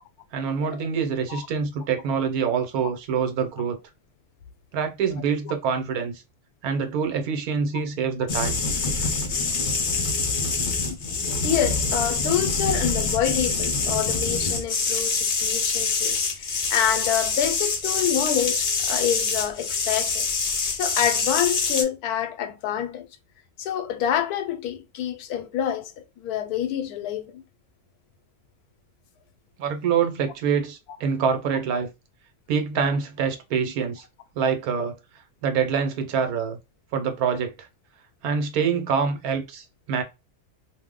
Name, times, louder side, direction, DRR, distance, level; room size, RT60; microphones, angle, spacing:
voice 1, 0.3-3.8 4.7-6.2 6.6-8.6 29.6-31.9 32.5-34.0 34.4-34.9 35.4-36.6 36.9-37.7 38.2-40.0, right 6 dB, 80° right, 1.2 m, -25 dB
sound 1, 8.3-21.8, left 4 dB, 55° left, 0.5 m, -25 dB
voice 2, 11.4-20.3 20.7-23.1 23.6-27.4, left 10 dB, 90° left, 1.1 m, -27 dB
2.6 x 2.1 x 3.6 m
omnidirectional pair, 1.6 m